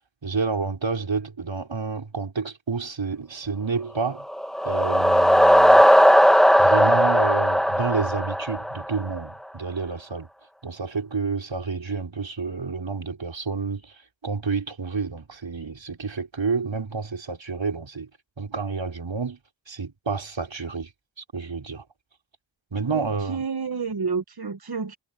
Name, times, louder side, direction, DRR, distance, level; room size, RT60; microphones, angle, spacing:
voice 1, 0.2-4.3 4.6-5.9 6.6-10.3 10.6-18.1 18.4-19.4 19.7-20.9 21.2-21.8 22.7-23.5, right 4 dB, 70° right, 4.5 m, -29 dB
sound 1, 4.2-9.1, equal, ahead, 1.2 m, -17 dB
voice 2, 22.9-25.0, right 5 dB, 50° right, 1.2 m, -30 dB
wide cardioid pair, 60°, 47 cm